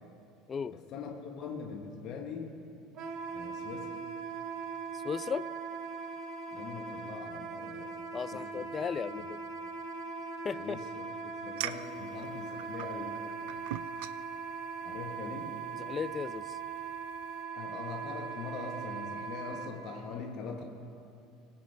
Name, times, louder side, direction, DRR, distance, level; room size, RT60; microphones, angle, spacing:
voice 1, 0.7-2.6 3.3-3.9 6.5-7.9 8.3-8.7 9.1-9.2 10.6-11.1 11.4-13.2 14.8-15.6 17.5-20.6, left 5 dB, 45° left, 2 dB, 1.6 m, -42 dB
Wind instrument woodwind instrument, 2.9-19.7, right 5 dB, 45° right, 1.4 m, -40 dB
voice 2, 5.0-5.5 8.1-9.4 10.4-10.8 15.7-16.6, left 6 dB, 30° left, 15 dB, 0.4 m, -36 dB
sound 1, 11.6-17.4, right 13 dB, 65° right, 0.3 m, -45 dB
21.5 x 8.3 x 3.7 m, 2.4 s
figure-of-eight pair, 65°, 0 cm